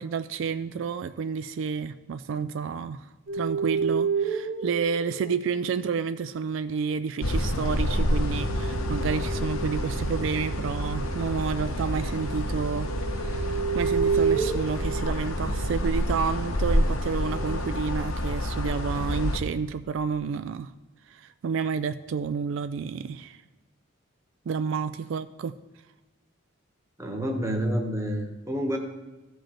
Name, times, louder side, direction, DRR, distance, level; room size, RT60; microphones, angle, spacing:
voice 1, 0.0-3.1 3.3-20.7 21.1-23.4 24.5-25.5, right 6 dB, 65° right, 12 dB, 0.3 m, -30 dB
sound 1, 3.3-6.1 8.1-15.8 17.2-17.6, right 5 dB, 50° right, 1.0 m, -31 dB
sound 2, 7.2-19.4, equal, 85° left, 1.1 m, -28 dB
voice 2, 27.0-28.8, equal, 15° right, 4 dB, 1.1 m, -28 dB
14.5 x 5.1 x 4.4 m, 1.1 s
head